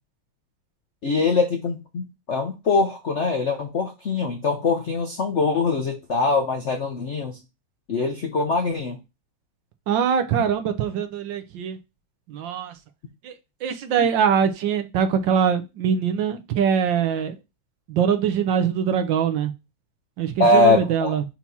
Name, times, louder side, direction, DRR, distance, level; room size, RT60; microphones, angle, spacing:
voice 1, 1.0-7.4 7.9-9.0 20.4-21.1, left 3 dB, 60° left, 0.7 m, -22 dB
voice 2, 9.9-11.8 12.3-12.7 13.2-17.3 17.9-19.5 20.2-21.2, right 7 dB, 70° right, 1.4 m, -23 dB
5.8 x 3.0 x 5.5 m
omnidirectional pair, 2.2 m